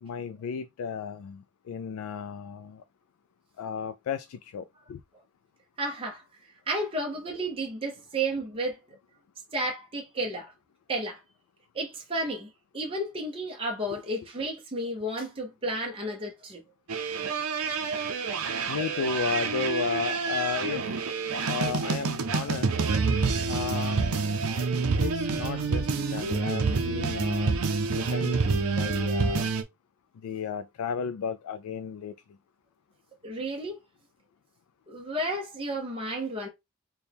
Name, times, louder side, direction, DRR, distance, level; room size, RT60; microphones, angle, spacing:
voice 1, 0.0-2.8 3.6-5.0 18.7-20.9 21.5-22.8 23.5-24.1 25.0-29.5 30.2-32.1, left 6 dB, 80° left, 0.3 m, -34 dB
voice 2, 5.8-6.2 6.7-8.8 9.5-10.5 10.9-11.2 11.7-12.5 12.7-16.6 25.5-25.7 33.2-33.8 34.9-36.5, right 1 dB, 25° right, 0.7 m, -32 dB
sound 1, 16.9-29.6, right 4 dB, 80° right, 0.6 m, -28 dB
4.3 x 2.2 x 3.4 m
head